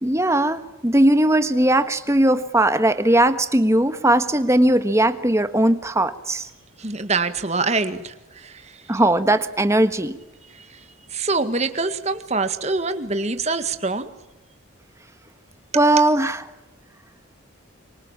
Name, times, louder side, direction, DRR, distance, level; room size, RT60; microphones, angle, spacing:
voice 1, 0.0-6.5 8.9-10.2 15.7-16.4, right 1 dB, 15° right, 10 dB, 1.4 m, -19 dB
voice 2, 6.8-8.9 10.5-14.1, right 3 dB, 30° right, 9 dB, 1.8 m, -25 dB
27.0 x 25.0 x 7.3 m, 1.0 s
head